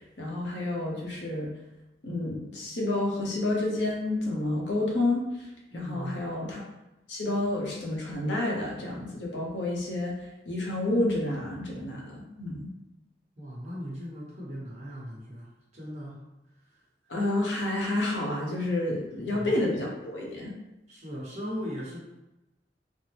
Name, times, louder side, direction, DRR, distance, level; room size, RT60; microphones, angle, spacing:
voice 1, 0.0-1.5 2.0-5.2 5.7-6.6 7.1-10.1 10.4-12.7 17.1-20.5, left 2 dB, 80° left, -2 dB, 0.8 m, -29 dB
voice 2, 5.7-6.2 13.4-15.5 15.7-16.2 16.6-16.8 19.3-19.6 20.9-22.0, equal, 40° right, -5 dB, 1.0 m, -38 dB
3.5 x 2.0 x 2.8 m, 0.98 s
head